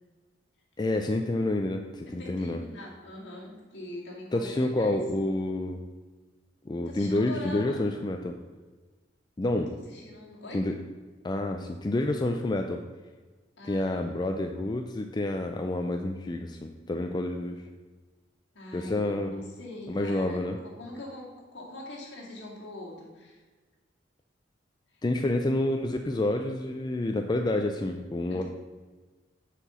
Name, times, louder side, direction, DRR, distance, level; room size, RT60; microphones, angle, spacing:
voice 1, 0.8-2.6 4.3-5.8 6.7-8.4 9.4-9.7 10.5-10.7 11.2-12.8 13.6-17.6 18.7-19.4 19.9-20.6 25.0-28.4, left 1 dB, 20° left, 4 dB, 0.4 m, -28 dB
voice 2, 2.0-5.0 6.8-7.9 9.6-10.6 13.6-14.1 18.5-23.4 24.9-25.0 28.3-28.4, left 1 dB, 65° left, -3 dB, 2.3 m, -43 dB
6.9 x 4.7 x 6.8 m, 1.3 s
head